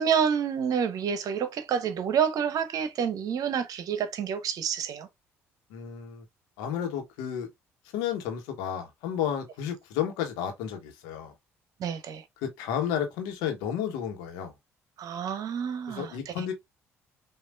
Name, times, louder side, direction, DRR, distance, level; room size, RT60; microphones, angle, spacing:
voice 1, 0.0-5.1 11.8-12.2 15.0-16.4, right 7 dB, 55° right, 0.9 m, -28 dB
voice 2, 5.7-6.2 6.6-7.5 7.9-11.3 12.4-14.5 15.9-16.5, left 9 dB, 70° left, 1.2 m, -32 dB
6.1 x 2.5 x 2.4 m
hypercardioid pair, 50°, 7 cm